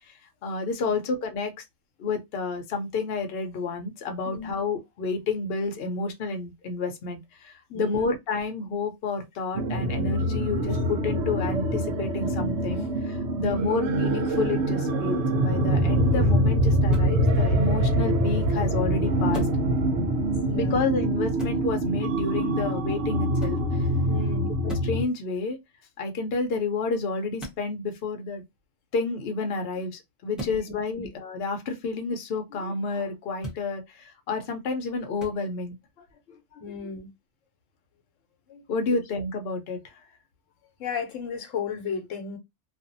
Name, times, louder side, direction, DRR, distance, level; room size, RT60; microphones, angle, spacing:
voice 1, 0.4-1.6 2.0-19.5 20.5-23.9 24.6-25.6 26.0-28.4 28.9-35.7 36.3-36.6 38.5-39.8, left 3 dB, 60° left, 0.8 m, -30 dB
voice 2, 7.7-8.1 13.8-13.9 20.5-20.8 24.1-24.5 30.4-30.6 31.0-31.1 36.6-37.1 40.8-42.4, left 6 dB, 80° left, 1.0 m, -34 dB
sound 1, 9.5-25.0, right 1 dB, 70° right, 0.9 m, -24 dB
sound 2, 16.9-17.2 19.3-19.7 21.4-21.6 23.4-23.6 24.7-25.0 27.4-27.6 30.3-30.6 33.4-33.6 35.2-35.4, right 1 dB, ahead, 0.7 m, -38 dB
2.5 x 2.3 x 2.5 m
omnidirectional pair, 1.3 m